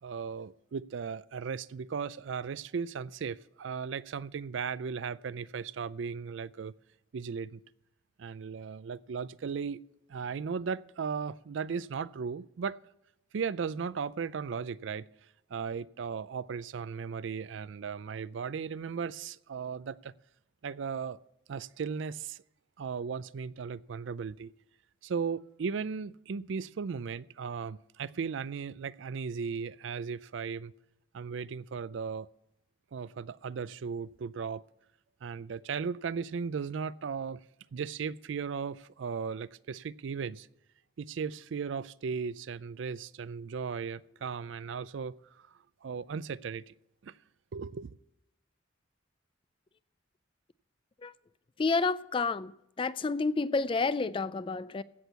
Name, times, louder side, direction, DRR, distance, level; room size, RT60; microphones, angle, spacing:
voice 1, 0.0-6.7 7.1-7.6 8.2-9.8 10.1-12.8 13.3-15.1 15.5-20.1 20.6-21.2 21.5-22.4 22.8-24.5 25.0-30.7 31.1-32.3 32.9-34.6 35.2-37.4 37.7-40.5 41.0-45.5 45.8-46.7 47.0-47.2 47.5-47.9, right 6 dB, 70° right, 0.4 m, -36 dB
voice 2, 51.6-52.5 52.8-54.8, left 4 dB, 25° left, 0.3 m, -29 dB
16.0 x 6.3 x 6.8 m
head